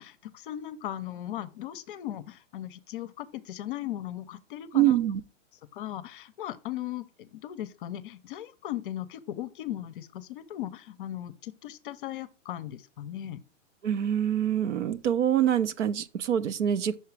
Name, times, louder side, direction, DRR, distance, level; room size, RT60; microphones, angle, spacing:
voice 1, 0.0-5.0 5.7-13.4, left 12 dB, 45° left, 0.6 m, -38 dB
voice 2, 4.7-5.2 13.8-16.9, right 10 dB, 65° right, 0.8 m, -25 dB
5.7 x 4.7 x 4.7 m
hypercardioid pair, 140°, 38 cm